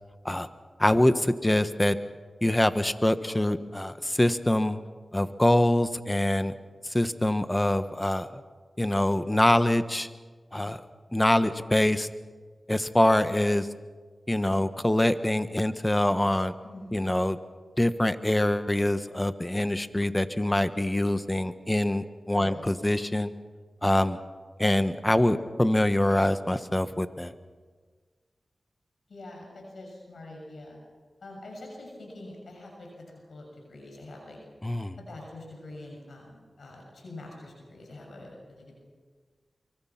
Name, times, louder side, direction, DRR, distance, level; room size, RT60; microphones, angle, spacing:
voice 1, 0.8-2.0 2.4-4.8 5.1-6.5 6.8-8.4 8.8-10.1 10.5-10.8 11.1-12.1 12.7-13.7 14.3-16.5 16.9-17.4 17.8-23.3 23.8-24.2 24.6-27.3 34.6-35.0, left 1 dB, 20° left, 11 dB, 1.4 m, -24 dB
voice 2, 16.6-16.9 22.3-22.6 29.1-30.8 31.2-34.4 35.0-38.7, left 2 dB, 80° left, 0 dB, 6.9 m, -45 dB
24.5 x 24.0 x 5.9 m, 1.5 s
cardioid pair, 45°, 0 cm